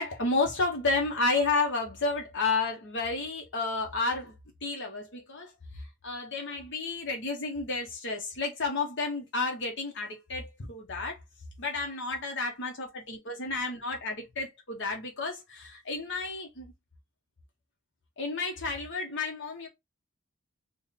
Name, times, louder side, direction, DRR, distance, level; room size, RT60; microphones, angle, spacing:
voice 1, 0.0-4.3 4.6-11.2 11.6-16.7 18.2-19.7, left 3 dB, 60° left, 0.9 m, -31 dB
3.7 x 2.1 x 4.0 m
head